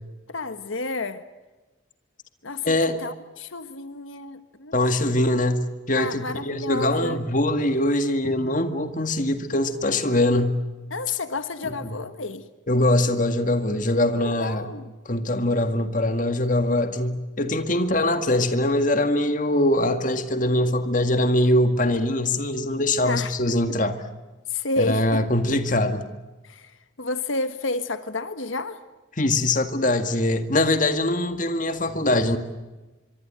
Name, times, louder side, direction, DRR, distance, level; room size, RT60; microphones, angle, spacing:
voice 1, 0.3-1.2 2.4-4.8 5.9-7.2 10.9-12.4 14.2-14.9 23.0-23.3 23.7-23.8 24.5-25.2 26.4-28.8, left 3 dB, 85° left, 10 dB, 1.5 m, -31 dB
voice 2, 2.6-3.0 4.7-10.6 11.1-11.2 11.6-12.0 12.7-14.7 15.1-23.9 24.8-26.0 29.2-32.4, left 1 dB, 40° left, 8 dB, 2.0 m, -22 dB
25.0 x 24.5 x 9.0 m, 1.1 s
head